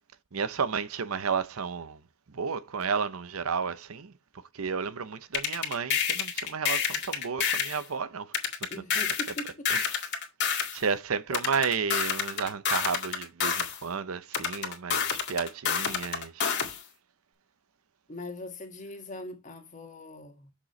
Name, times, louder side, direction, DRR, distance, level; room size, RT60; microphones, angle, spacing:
voice 1, 0.3-2.0 2.3-4.1 4.5-8.3 9.7-9.8 10.7-16.5, right 6 dB, 75° right, 0.7 m, -32 dB
sound 1, 5.3-7.8 8.3-10.8 11.3-13.8 14.3-16.8, left 7 dB, 55° left, 2.1 m, -28 dB
voice 2, 8.7-9.7 18.1-20.5, left 1 dB, 35° left, 1.8 m, -41 dB
7.6 x 6.8 x 3.2 m
head